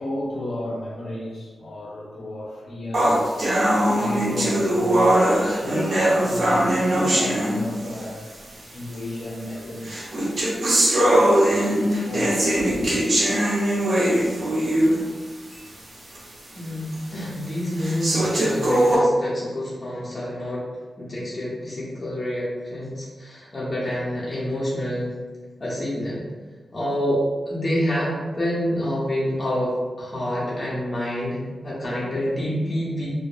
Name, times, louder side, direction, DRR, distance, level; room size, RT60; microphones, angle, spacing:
voice 1, 0.0-3.2 3.9-10.3 11.9-12.9, left 1 dB, 75° left, -6 dB, 1.1 m, -33 dB
sound 1, 2.9-8.1 8.9-9.0 9.8-15.1 15.5-15.6 16.1-16.2 16.9-17.0 17.8-18.9, right 1 dB, 50° right, 0.9 m, -21 dB
voice 2, 17.1-20.6 21.0-25.1 25.6-26.2 26.7-27.2 27.5-31.4 31.6-33.1, equal, 30° left, -7 dB, 0.8 m, -27 dB
4.7 x 2.0 x 2.6 m, 1.3 s
wide cardioid pair, 170°, 0 cm